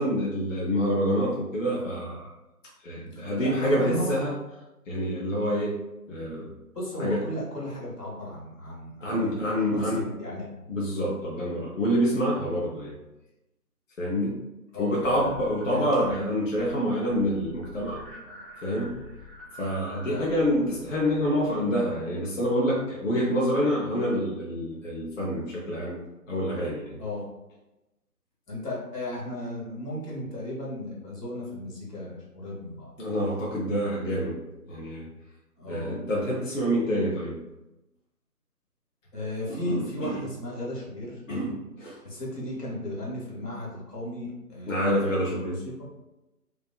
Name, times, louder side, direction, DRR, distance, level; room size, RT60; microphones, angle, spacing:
voice 1, 0.0-2.3 2.8-4.3 4.9-5.8 6.1-6.5 7.0-7.2 9.0-10.1 10.7-12.9 14.0-14.4 14.8-18.0 18.6-19.0 19.6-26.0 26.3-27.0 33.0-34.4 34.7-35.1 35.7-37.4 39.5-40.2 41.3-42.0 44.7-45.6, equal, 55° left, -5 dB, 0.6 m, -27 dB
voice 2, 3.4-4.2 6.7-9.5 9.7-10.5 14.7-15.3 15.7-16.1 20.1-20.3 27.0-27.3 28.5-32.9 35.6-36.0 39.1-41.2 42.0-45.5 45.8-45.9, left 1 dB, 85° left, -4 dB, 1.3 m, -35 dB
sound 1, 15.0-16.2 16.5-16.8 17.1-21.9, left 1 dB, ahead, 0.3 m, -46 dB
2.5 x 2.2 x 2.3 m, 0.98 s
figure-of-eight pair, 160°, 47 cm